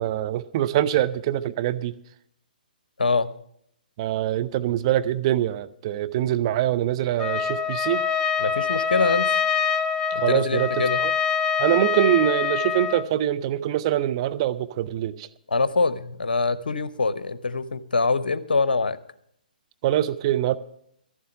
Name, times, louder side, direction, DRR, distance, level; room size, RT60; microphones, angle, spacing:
voice 1, 0.0-1.9 4.0-8.0 10.2-10.7 11.0-11.1 11.6-15.3 19.8-20.6, right 12 dB, 35° right, 0.6 m, -24 dB
voice 2, 3.0-3.3 8.4-9.3 10.1-11.0 15.5-19.0, left 3 dB, 75° left, 0.9 m, -24 dB
Trumpet, 7.2-13.1, left 6 dB, 15° left, 0.6 m, -25 dB
12.5 x 7.3 x 8.8 m
figure-of-eight pair, 130°, 5 cm